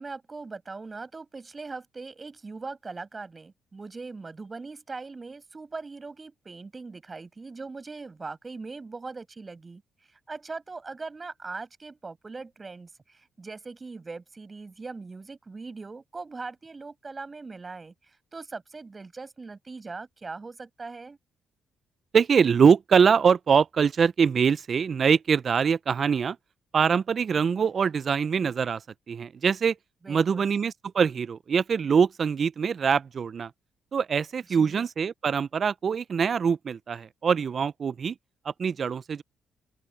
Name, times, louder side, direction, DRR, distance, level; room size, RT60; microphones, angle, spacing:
voice 1, 0.0-9.8 10.3-21.2 30.0-30.5 34.5-34.8, right 3 dB, 30° right, 7.0 m, -40 dB
voice 2, 22.1-26.4 26.7-28.8 29.1-29.8 30.1-33.5 33.9-38.2 38.5-39.2, right 6 dB, 45° right, 0.4 m, -23 dB
open air
cardioid pair, 90°, 0 cm